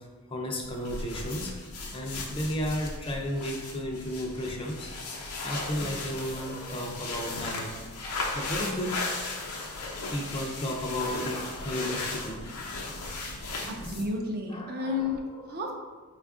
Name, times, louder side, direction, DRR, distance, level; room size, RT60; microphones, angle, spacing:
voice 1, 0.3-1.5 1.9-4.9 5.4-7.8 8.0-9.4 9.7-12.4 14.5-15.4, equal, 25° left, 0 dB, 0.4 m, -34 dB
sound 1, 0.6-14.2, left 3 dB, 85° left, 0.6 m, -36 dB
voice 2, 13.7-15.7, left 3 dB, 45° right, 1 dB, 0.5 m, -32 dB
4.3 x 2.3 x 3.5 m, 1.3 s
head